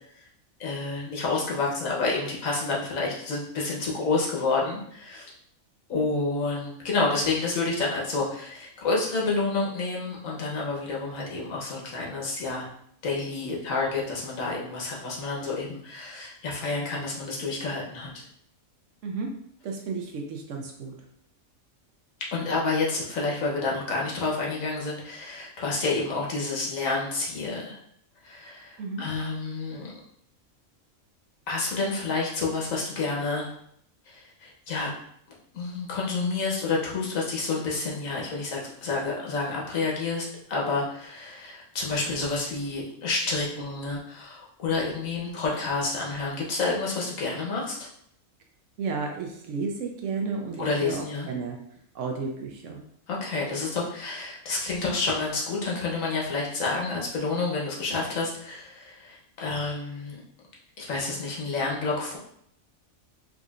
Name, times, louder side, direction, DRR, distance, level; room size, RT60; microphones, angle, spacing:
voice 1, 0.6-5.3 5.9-12.6 13.0-18.2 22.3-27.8 28.2-29.9 31.5-33.5 34.1-34.9 35.5-47.8 50.6-51.3 53.1-60.2 60.8-62.2, left 3 dB, 75° left, -3 dB, 1.3 m, -29 dB
voice 2, 19.6-21.0 28.8-29.0 48.8-51.6 51.9-52.8, right 4 dB, 65° right, 2 dB, 0.9 m, -32 dB
4.7 x 2.7 x 2.4 m, 0.69 s
omnidirectional pair, 1.4 m